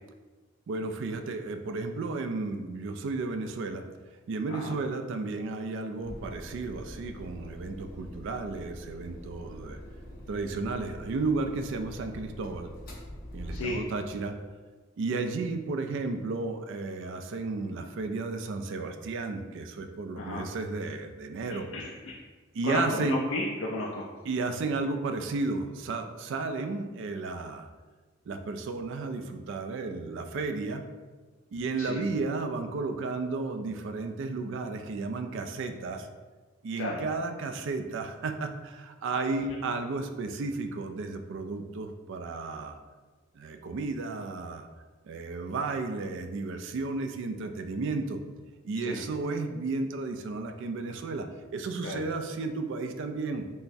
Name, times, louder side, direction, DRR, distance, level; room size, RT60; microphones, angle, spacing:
voice 1, 0.7-3.8 4.3-9.8 10.3-12.7 13.3-14.3 15.0-21.7 22.5-23.2 24.2-27.7 28.3-30.8 31.5-36.1 36.6-42.8 43.4-44.7 45.0-48.2 48.6-53.5, right 3 dB, 65° right, 7 dB, 0.3 m, -33 dB
sound 1, 6.0-14.1, equal, 50° left, 0.8 m, -44 dB
voice 2, 21.5-22.2 22.6-24.0 31.8-32.1 36.8-37.0 48.8-49.0 51.8-52.0, left 2 dB, 70° left, -3 dB, 0.4 m, -33 dB
5.5 x 2.0 x 2.6 m, 1.3 s
head